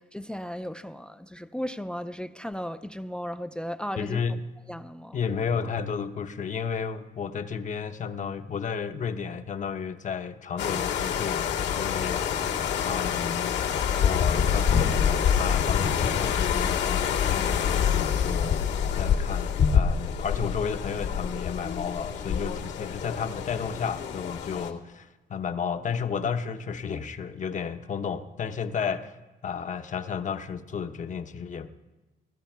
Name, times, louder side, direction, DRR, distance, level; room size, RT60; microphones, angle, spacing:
voice 1, 0.0-4.2 4.7-5.2, equal, 5° left, 0.5 m, -35 dB
voice 2, 4.0-4.4 5.1-12.4 12.8-13.5 14.0-29.1 29.4-31.7, left 6 dB, 45° left, 1.0 m, -32 dB
sound 1, 10.6-24.7, left 7 dB, 80° left, 2.1 m, -26 dB
17.0 x 13.5 x 4.6 m
cardioid pair, 95°, 18 cm